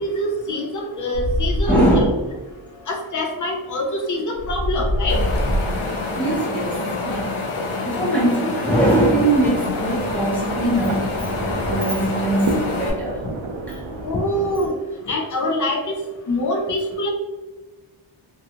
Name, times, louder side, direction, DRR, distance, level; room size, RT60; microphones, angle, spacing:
voice 1, 0.0-2.1 2.9-5.2 14.0-14.7 15.1-15.9 16.3-17.1, left 1 dB, 40° left, 2 dB, 0.5 m, -24 dB
sound 1, 1.1-2.1 4.3-6.0 10.1-11.7, equal, 30° right, 0.9 m, -25 dB
voice 2, 1.6-2.2 2.7-2.8 6.2-7.4 7.8-11.2 11.5-13.2 13.7-13.8, right 1 dB, 5° left, -7 dB, 0.7 m, -21 dB
Wind, 5.1-12.9, left 3 dB, 80° left, 0.7 m, -27 dB
sound 2, 9.3-14.7, right 2 dB, 70° right, 0.5 m, -31 dB
2.7 x 2.3 x 2.7 m, 1.2 s
wide cardioid pair, 165°, 49 cm